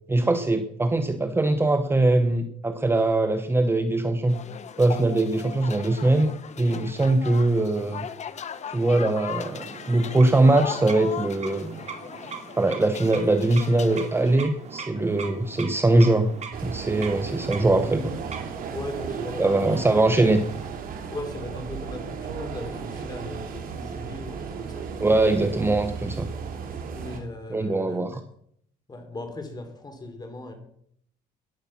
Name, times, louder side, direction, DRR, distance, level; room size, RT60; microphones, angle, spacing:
voice 1, 0.1-4.4 4.8-8.1 8.7-11.8 12.5-16.3 16.6-18.1 19.4-20.4 25.0-26.3 27.5-28.2, right 2 dB, 15° right, 8 dB, 1.0 m, -22 dB
sound 1, 4.3-14.4, left 8 dB, 45° left, 1.0 m, -38 dB
sound 2, 9.2-21.0, right 5 dB, 45° right, 2.7 m, -41 dB
sound 3, 16.5-27.2, right 6 dB, 60° right, 2.9 m, -35 dB
voice 2, 18.7-19.7 21.1-24.9 26.9-28.0 28.9-30.5, left 2 dB, 25° left, 6 dB, 3.6 m, -38 dB
14.0 x 10.5 x 5.9 m, 0.69 s
cardioid pair, 110°, 17 cm